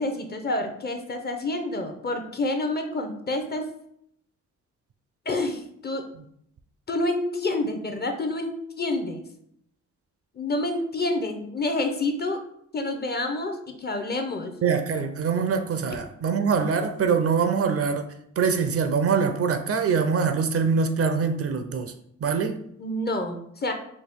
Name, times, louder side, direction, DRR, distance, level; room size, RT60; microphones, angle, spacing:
voice 1, 0.0-3.7 5.3-6.0 6.9-9.2 10.3-12.4 12.7-14.5 22.8-23.7, left 2 dB, 35° left, 0.6 m, -28 dB
voice 2, 14.6-18.1 18.4-21.9 22.2-22.6, right 5 dB, 50° right, 0.5 m, -24 dB
4.2 x 2.3 x 3.5 m
cardioid pair, 70°, 30 cm